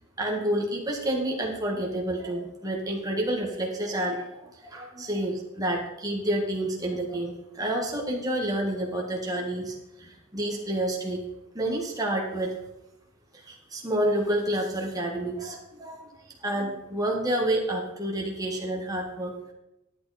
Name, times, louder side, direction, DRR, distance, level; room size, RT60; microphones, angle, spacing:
voice 1, 0.2-11.2 11.5-12.5 13.5-16.1 16.4-19.3, right 1 dB, 20° right, -1 dB, 1.8 m, -29 dB
11.0 x 8.9 x 4.3 m, 0.90 s
head